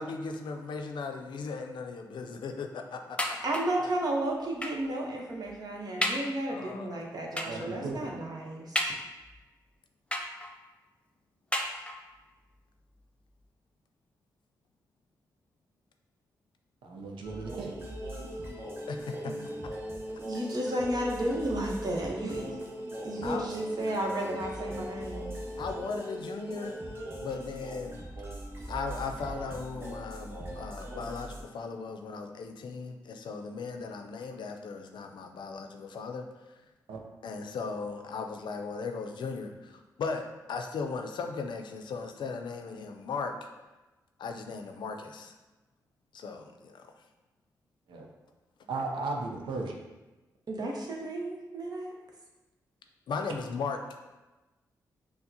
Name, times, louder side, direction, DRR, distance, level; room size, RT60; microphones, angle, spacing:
voice 1, 0.0-3.4 3.8-3.9 6.4-7.2 7.5-7.9 18.9-19.3 23.2-23.5 25.6-26.8 27.2-28.0 28.7-36.3 37.2-43.3 44.2-45.3 46.1-46.9 53.1-53.8, left 4 dB, 70° left, 5 dB, 0.4 m, -37 dB
sound 1, 3.2-3.9 4.6-4.9 5.5-5.6 6.0-6.4 7.4-7.7 8.8-9.4 10.1-10.7 11.5-12.2 13.0-13.1 13.4-13.5, left 1 dB, 15° left, 0.6 m, -33 dB
voice 2, 3.4-8.9 19.2-19.4 20.2-22.6 23.0-25.3 50.5-51.9, right 1 dB, 55° right, -1 dB, 0.9 m, -33 dB
voice 3, 7.5-8.1 16.8-17.7 36.9-37.0 47.9-48.1 48.7-49.7, right 3 dB, 80° right, 1 dB, 0.5 m, -35 dB
sound 2, 17.2-31.4, equal, 30° right, 1.1 m, -39 dB
5.6 x 2.1 x 2.7 m, 1.1 s
supercardioid pair, 40°, 8 cm